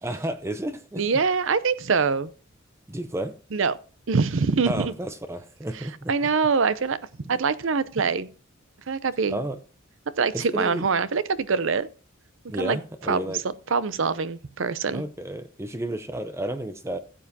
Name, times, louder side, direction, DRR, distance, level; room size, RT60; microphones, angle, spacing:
voice 1, 0.0-1.0 2.9-3.4 4.6-6.1 7.2-7.4 9.3-9.6 10.3-10.9 12.5-13.4 14.9-17.0, right 1 dB, 15° right, 0.6 m, -32 dB
voice 2, 1.0-2.3 3.5-3.7 4.1-4.9 6.1-7.0 7.3-8.3 8.9-9.4 10.2-11.9 12.6-12.8 13.1-15.0, right 5 dB, 65° right, 0.6 m, -24 dB
16.0 x 7.4 x 2.8 m
head